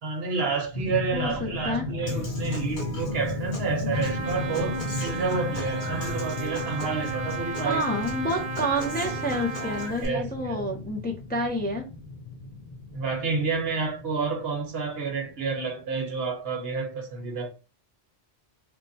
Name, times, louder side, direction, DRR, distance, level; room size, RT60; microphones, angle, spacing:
voice 1, 0.0-7.8 10.0-10.6 12.9-17.5, right 4 dB, 65° right, 1.2 m, -29 dB
sound 1, 0.7-16.2, left 3 dB, 45° left, 0.8 m, -35 dB
voice 2, 1.1-1.9 7.6-11.9, equal, 10° left, 0.5 m, -29 dB
Human voice / Acoustic guitar, 2.1-10.0, left 1 dB, 80° left, 1.8 m, -38 dB
Trumpet, 3.9-10.0, right 5 dB, 50° right, 0.6 m, -35 dB
3.5 x 2.1 x 4.0 m
omnidirectional pair, 1.1 m